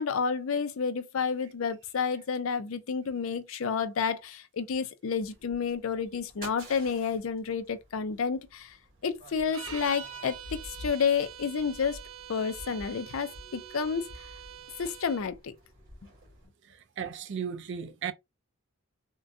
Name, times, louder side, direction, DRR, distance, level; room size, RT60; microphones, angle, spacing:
voice 1, 0.0-8.8 9.0-12.0 12.3-14.1 14.8-15.5, left 6 dB, 70° left, 0.5 m, -30 dB
sound 1, 5.2-16.5, equal, 45° right, 1.9 m, -50 dB
sound 2, 9.5-15.3, right 8 dB, 75° right, 0.9 m, -45 dB
voice 2, 16.7-18.1, right 7 dB, 60° right, 0.4 m, -36 dB
3.6 x 2.2 x 2.6 m
head